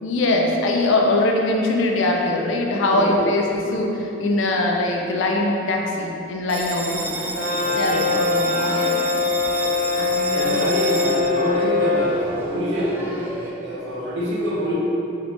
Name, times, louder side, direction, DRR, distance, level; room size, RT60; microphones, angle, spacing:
voice 1, 0.0-7.1 7.8-9.0 10.0-10.6, left 2 dB, 75° left, 1 dB, 0.4 m, -22 dB
voice 2, 2.9-3.3 7.6-8.2 10.3-13.1 13.6-14.7, equal, 70° right, -6 dB, 0.8 m, -26 dB
Bell, 6.5-13.5, right 2 dB, 10° right, 0.3 m, -31 dB
Brass instrument, 7.3-12.2, left 3 dB, 40° left, 0.7 m, -23 dB
3.0 x 2.4 x 3.4 m, 2.8 s
head